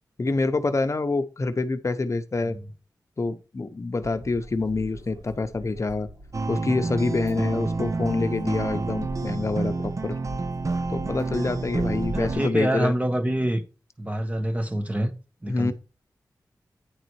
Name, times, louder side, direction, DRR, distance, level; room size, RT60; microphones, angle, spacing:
voice 1, 0.2-2.6 3.2-6.1 6.5-10.2 10.9-12.9 15.5-15.7, left 3 dB, 45° left, 0.8 m, -26 dB
sound 1, 4.0-12.4, right 1 dB, 85° right, 4.9 m, -41 dB
sound 2, 6.3-12.5, right 3 dB, 50° right, 0.7 m, -29 dB
voice 2, 12.1-13.6 14.0-15.1 15.4-15.7, right 1 dB, 20° right, 1.2 m, -26 dB
9.7 x 4.0 x 4.6 m
wide cardioid pair, 90°, 7 cm